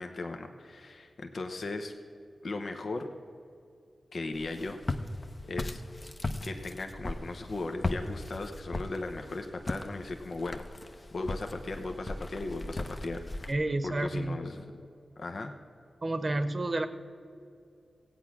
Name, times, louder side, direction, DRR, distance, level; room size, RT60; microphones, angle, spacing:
voice 1, 0.0-1.9 2.4-3.1 4.1-4.8 5.5-5.8 6.4-10.6 11.1-13.5 13.8-14.6 15.2-15.5, left 2 dB, 70° left, 5 dB, 0.9 m, -37 dB
Walk footsteps, 4.3-13.5, left 2 dB, 40° left, 0.8 m, -38 dB
voice 2, 13.5-14.5 16.0-16.9, right 2 dB, 45° right, 10 dB, 0.9 m, -30 dB
16.0 x 8.5 x 6.0 m, 2.5 s
cardioid pair, 50°, 0 cm